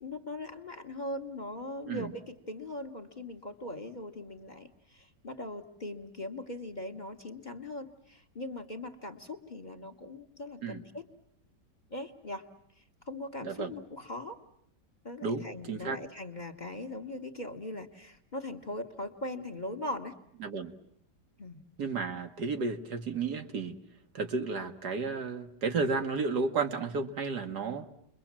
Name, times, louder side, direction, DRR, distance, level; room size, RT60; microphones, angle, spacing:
voice 1, 0.0-11.1 11.9-12.4 13.0-14.4 15.0-20.2 21.4-21.6, left 1 dB, 30° left, 7 dB, 1.3 m, -40 dB
voice 2, 13.4-13.7 15.2-16.0 20.4-20.7 21.8-23.8 24.1-27.9, right 4 dB, 75° right, 5 dB, 2.0 m, -32 dB
30.0 x 22.5 x 7.4 m, 0.72 s
omnidirectional pair, 1.8 m